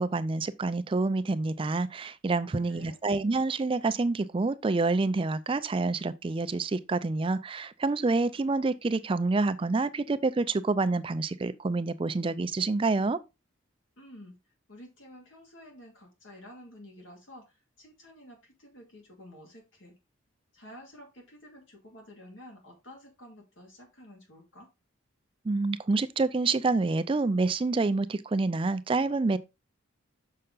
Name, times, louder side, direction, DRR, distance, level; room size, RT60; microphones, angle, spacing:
voice 1, 0.0-13.2 25.4-29.4, right 3 dB, 25° right, 0.4 m, -27 dB
voice 2, 2.3-3.0 14.0-14.4 14.7-20.0 20.5-24.7, left 1 dB, 70° left, 2.2 m, -51 dB
6.6 x 5.6 x 3.7 m
head